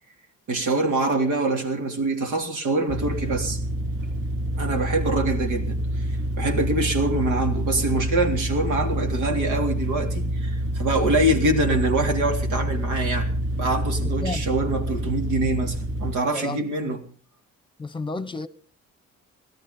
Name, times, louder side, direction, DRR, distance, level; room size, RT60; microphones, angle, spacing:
voice 1, 0.5-3.6 4.5-6.1 6.4-17.0, right 2 dB, 85° right, 3.5 m, -25 dB
sound 1, 2.9-16.1, right 1 dB, 50° right, 3.0 m, -27 dB
voice 2, 14.0-14.5 16.3-16.9 17.8-18.5, left 2 dB, 15° left, 1.1 m, -32 dB
18.0 x 13.0 x 5.3 m
cardioid pair, 90°, 30 cm